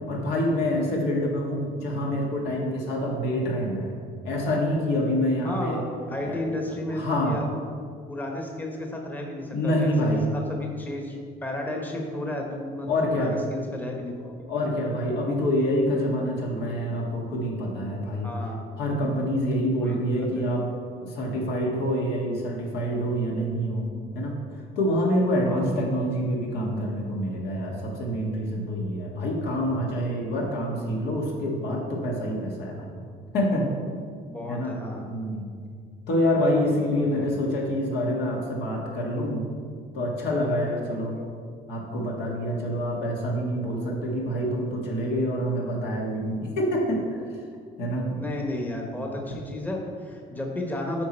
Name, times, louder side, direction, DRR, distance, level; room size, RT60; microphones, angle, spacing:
voice 1, 0.1-4.0 4.2-5.8 6.2-6.4 6.9-7.4 9.5-10.3 12.9-13.4 14.5-18.3 18.8-20.7 20.9-24.4 24.8-32.9 33.3-33.7 34.5-34.8 35.1-35.5 36.1-39.5 39.9-41.2 41.7-47.2 47.8-48.1, equal, 75° left, -1 dB, 1.6 m, -26 dB
voice 2, 5.4-7.5 8.1-11.2 11.4-14.3 18.2-18.6 19.8-20.4 25.4-25.7 34.3-35.0 36.9-37.4 41.1-41.3 48.1-51.0, left 1 dB, 10° left, 0 dB, 1.0 m, -33 dB
8.5 x 4.7 x 4.4 m, 2.1 s
cardioid pair, 110°, 17 cm